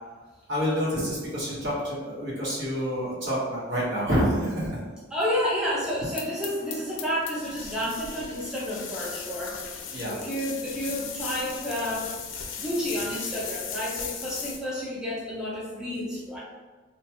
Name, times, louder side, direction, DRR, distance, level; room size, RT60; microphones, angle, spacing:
voice 1, 0.5-4.8 9.9-10.1, equal, 65° right, -8 dB, 1.2 m, -27 dB
voice 2, 5.1-12.1 12.6-16.4, equal, 5° right, -7 dB, 0.4 m, -30 dB
sound 1, 6.2-14.6, left 6 dB, 70° left, 0.4 m, -37 dB
3.0 x 2.3 x 2.8 m, 1.4 s
head